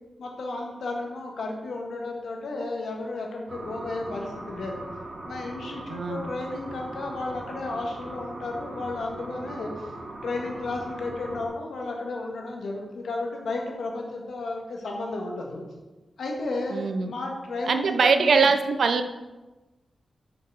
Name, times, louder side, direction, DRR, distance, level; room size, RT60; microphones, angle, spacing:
voice 1, 0.2-4.9 5.2-9.7 10.2-15.6 16.2-18.5, left 2 dB, 80° left, 0 dB, 1.7 m, -33 dB
sound 1, 3.5-11.5, right 2 dB, 45° right, 1.5 m, -40 dB
voice 2, 5.9-6.3 16.7-17.1 17.7-19.0, right 5 dB, 75° right, 8 dB, 0.7 m, -22 dB
6.1 x 5.8 x 6.3 m, 1.1 s
cardioid pair, 60°, 0 cm